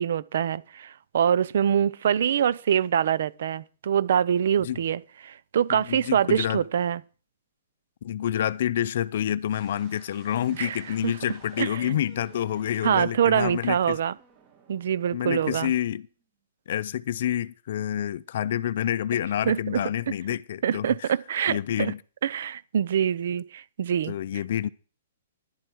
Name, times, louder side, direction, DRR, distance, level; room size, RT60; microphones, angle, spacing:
voice 1, 0.0-7.0 10.6-11.1 11.6-12.0 12.8-14.1 14.7-15.7 19.5-19.8 20.6-21.9 22.2-24.1, right 8 dB, 55° right, 0.6 m, -25 dB
voice 2, 5.7-6.6 8.0-14.0 15.1-16.1 16.7-21.1 21.5-22.0 24.1-24.7, left 10 dB, 50° left, 0.5 m, -28 dB
sound 1, 9.4-16.2, right 6 dB, 25° right, 2.6 m, -55 dB
12.5 x 11.5 x 4.6 m
hypercardioid pair, 175°, 0 cm